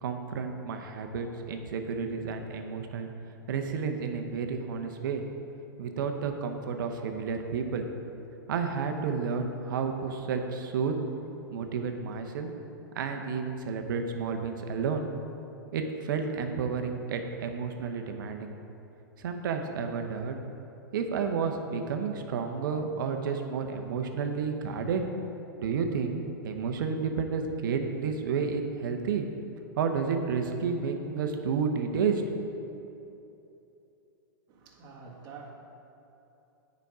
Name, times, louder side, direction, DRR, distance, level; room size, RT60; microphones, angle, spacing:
voice 1, 0.0-3.1 3.5-5.2 5.8-7.9 8.5-10.9 11.5-12.5 12.9-15.0 15.7-18.5 19.2-20.4 20.9-25.0 25.6-29.3 29.8-32.2, right 5 dB, 70° right, 5 dB, 0.9 m, -31 dB
voice 2, 34.5-35.5, right 5 dB, 40° right, -2 dB, 1.7 m, -47 dB
9.2 x 5.3 x 4.9 m, 2.9 s
hypercardioid pair, 115°, 11 cm